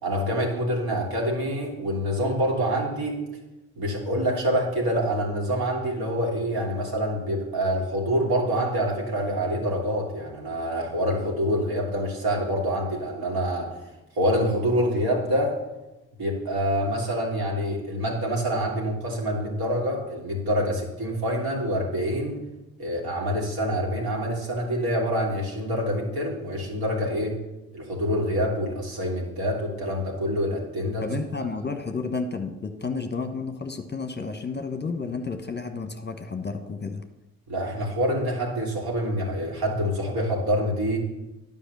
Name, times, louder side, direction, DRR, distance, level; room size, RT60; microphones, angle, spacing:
voice 1, 0.0-3.2 3.8-13.7 14.1-15.5 16.2-22.4 22.8-27.4 27.7-31.1 37.5-41.0, equal, 60° right, -1 dB, 3.0 m, -26 dB
voice 2, 31.0-37.0, left 4 dB, 25° left, 7 dB, 1.1 m, -31 dB
10.5 x 5.4 x 6.7 m, 1.0 s
hypercardioid pair, 45°, 40 cm